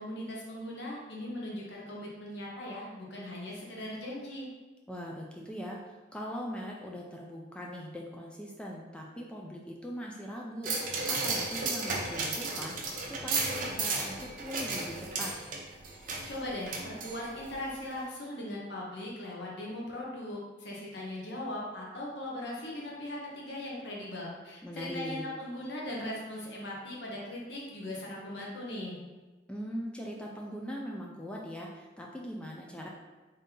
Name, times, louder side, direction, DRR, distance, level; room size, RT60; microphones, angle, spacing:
voice 1, 0.0-4.5 15.9-29.0, left 1 dB, 60° left, -3 dB, 0.8 m, -39 dB
voice 2, 4.9-5.8 6.1-12.8 13.0-15.3 24.6-25.2 29.5-32.9, equal, 5° left, -2 dB, 0.3 m, -41 dB
sound 1, 10.6-17.5 17.9-18.0, right 3 dB, 45° right, 0.6 m, -34 dB
3.7 x 2.7 x 3.7 m, 1.2 s
head